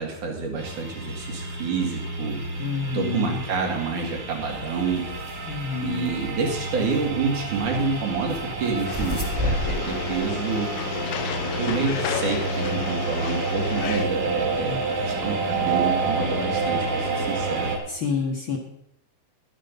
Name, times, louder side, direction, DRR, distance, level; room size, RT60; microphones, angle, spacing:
voice 1, 0.0-2.4 2.9-5.1 5.8-10.7 11.6-17.7, right 4 dB, 75° right, 0 dB, 3.8 m, -28 dB
sound 1, 0.6-17.8, right 3 dB, 45° right, 2.4 m, -29 dB
voice 2, 2.6-3.4 5.5-6.3 14.7-14.8 17.9-18.6, left 5 dB, 50° left, 1 dB, 1.7 m, -29 dB
sound 2, 4.5-10.3, left 1 dB, 10° right, 1.6 m, -33 dB
sound 3, 8.9-14.1, left 11 dB, 75° left, 2.0 m, -33 dB
12.0 x 10.0 x 5.3 m, 0.77 s
omnidirectional pair, 3.6 m